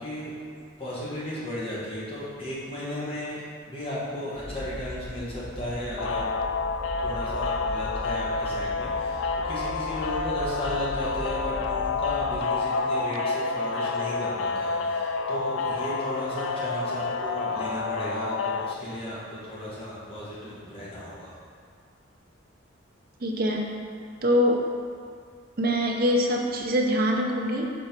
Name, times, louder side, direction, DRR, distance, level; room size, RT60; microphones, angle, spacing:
voice 1, 0.0-6.3 7.0-21.4, left 1 dB, 30° left, -8 dB, 1.3 m, -35 dB
sound 1, 4.3-12.4, equal, 20° right, 1.0 m, -39 dB
sound 2, 6.0-18.7, left 4 dB, 70° left, 0.3 m, -29 dB
voice 2, 23.2-23.7 24.2-24.6 25.6-27.7, equal, 50° right, 1 dB, 0.6 m, -24 dB
5.3 x 4.4 x 4.4 m, 2.2 s
head